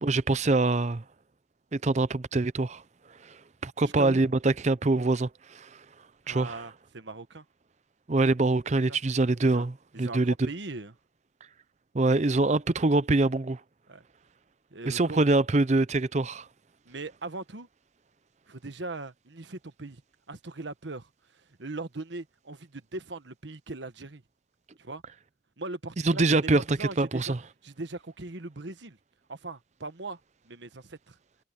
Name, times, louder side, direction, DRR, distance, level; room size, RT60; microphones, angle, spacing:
voice 1, 0.0-1.0 1.7-2.8 3.6-5.7 6.3-6.6 8.1-10.5 11.9-13.6 14.9-16.4 26.0-27.4, right 2 dB, 35° right, 0.6 m, -24 dB
voice 2, 6.3-7.4 8.9-9.0 9.4-9.6 9.9-10.9 13.9-14.0 14.7-15.2 16.8-17.7 18.5-20.0 20.3-21.1 21.6-24.2 24.8-25.0 25.6-27.3 27.6-29.0 29.3-30.2 30.5-31.1, right 2 dB, 70° right, 1.3 m, -39 dB
head